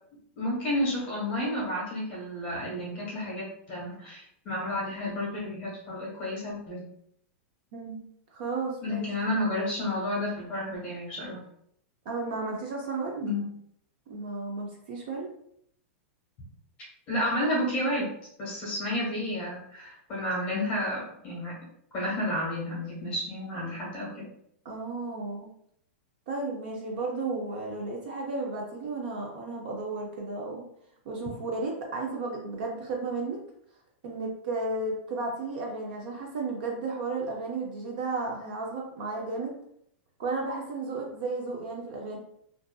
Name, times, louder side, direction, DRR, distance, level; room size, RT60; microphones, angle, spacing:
voice 1, 0.4-6.9 8.8-11.4 13.2-13.5 17.1-18.0 18.4-21.6 21.9-24.3, left 1 dB, 20° left, -5 dB, 1.1 m, -31 dB
voice 2, 7.7-8.0 8.3-9.1 12.1-13.3 14.1-15.3 24.6-25.5 26.3-30.6 31.1-33.4 34.0-39.5 40.2-42.2, right 3 dB, 45° right, 0 dB, 0.5 m, -33 dB
2.5 x 2.4 x 2.2 m, 0.69 s
supercardioid pair, 175°, 7 cm